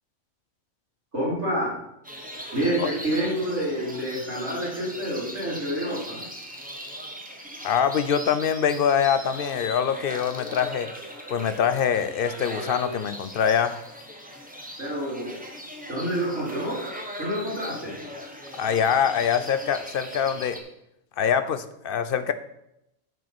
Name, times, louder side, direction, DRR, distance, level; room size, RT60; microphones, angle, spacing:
voice 1, 1.1-1.8 2.5-6.2 14.8-15.4 15.9-16.8 17.2-18.0, right 1 dB, 60° right, -6 dB, 4.1 m, -28 dB
sound 1, 2.0-20.6, equal, 5° right, 1.1 m, -39 dB
voice 2, 7.6-10.9 11.3-13.8 18.5-20.6 21.2-22.3, left 8 dB, 55° left, 11 dB, 0.7 m, -24 dB
10.5 x 4.6 x 5.9 m, 0.82 s
omnidirectional pair, 1.3 m